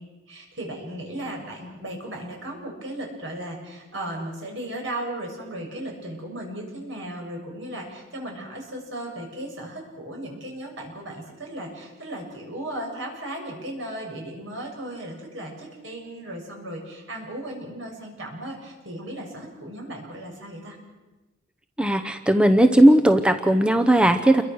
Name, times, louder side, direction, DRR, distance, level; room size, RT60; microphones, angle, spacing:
voice 1, 0.3-20.8, right 1 dB, 65° right, 0 dB, 7.5 m, -36 dB
voice 2, 21.8-24.4, right 1 dB, 5° right, 6 dB, 0.8 m, -17 dB
29.0 x 23.0 x 6.4 m, 1.1 s
head